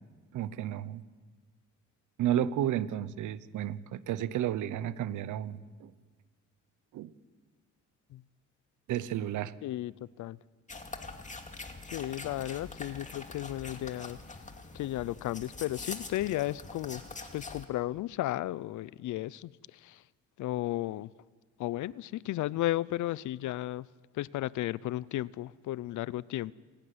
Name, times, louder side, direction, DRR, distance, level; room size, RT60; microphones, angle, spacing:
voice 1, 0.3-1.0 2.2-5.9 6.9-7.1 8.9-9.5, right 11 dB, 80° right, 1.0 m, -32 dB
voice 2, 9.6-9.9 10.2-10.4 11.9-14.2 14.7-17.0 17.3-19.5 19.8-20.0 20.4-21.1 21.6-23.9 24.1-26.5, left 15 dB, 75° left, 0.6 m, -34 dB
sound 1, 10.7-17.6, left 3 dB, 25° left, 2.4 m, -44 dB
27.5 x 12.0 x 9.6 m
cardioid pair, 90°, 30 cm